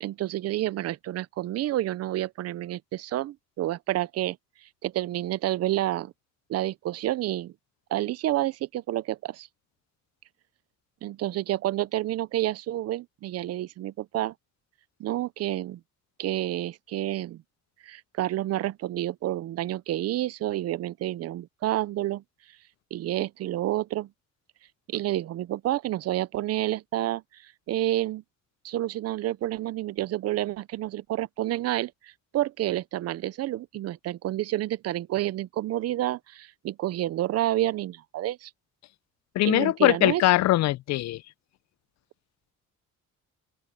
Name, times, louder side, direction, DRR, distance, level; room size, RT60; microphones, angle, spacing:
voice 1, 0.0-4.4 4.8-6.1 6.5-7.5 7.9-9.5 11.0-14.3 15.0-15.8 16.2-17.4 17.8-22.2 22.9-24.1 24.9-28.2 28.6-38.5 39.4-40.2, right 14 dB, 55° right, 0.5 m, -29 dB
voice 2, 39.4-41.2, left 16 dB, 60° left, 0.4 m, -22 dB
open air
cardioid pair, 180°, 31 cm